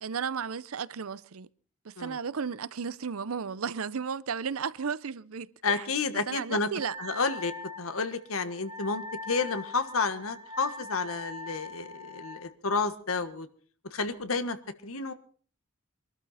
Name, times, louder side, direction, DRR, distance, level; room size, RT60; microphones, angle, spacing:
voice 1, 0.0-1.5 1.8-5.5 5.8-5.9 6.3-6.9, right 6 dB, 85° right, 0.6 m, -34 dB
voice 2, 5.6-6.7 7.0-7.5 7.8-13.5 13.9-14.6 14.8-15.1, left 4 dB, 85° left, 1.5 m, -30 dB
Wind instrument woodwind instrument, 6.8-12.4, left 2 dB, 15° right, 1.4 m, -42 dB
23.5 x 12.5 x 4.2 m
head